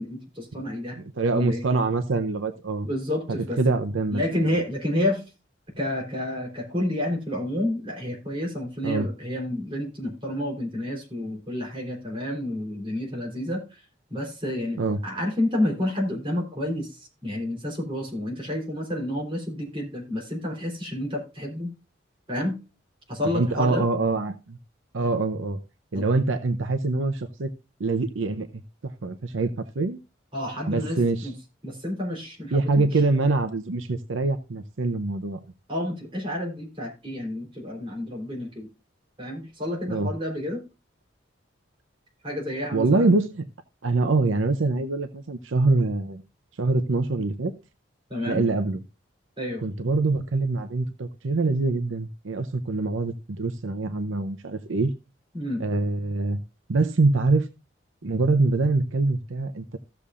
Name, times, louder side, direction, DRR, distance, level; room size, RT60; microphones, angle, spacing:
voice 1, 0.0-1.0 1.3-1.6 2.8-3.6 4.1-5.2 5.8-13.6 14.1-21.7 22.3-22.5 23.1-23.8 25.9-26.0 30.3-31.3 31.6-32.9 35.7-38.7 39.2-40.6 42.2-43.1 48.1-48.5 49.4-49.7 55.3-55.6, left 1 dB, 25° right, 3.5 m, -29 dB
voice 2, 1.2-2.9 3.3-4.5 8.8-9.1 14.8-15.0 23.2-24.6 24.9-25.6 25.9-27.5 27.8-30.0 30.7-31.3 32.5-35.4 39.9-40.1 42.7-43.4 43.8-46.2 46.6-47.5 48.3-48.8 49.6-54.9 55.6-56.4 56.7-57.5 58.0-59.8, right 3 dB, 85° right, 0.7 m, -24 dB
15.5 x 6.9 x 2.4 m
head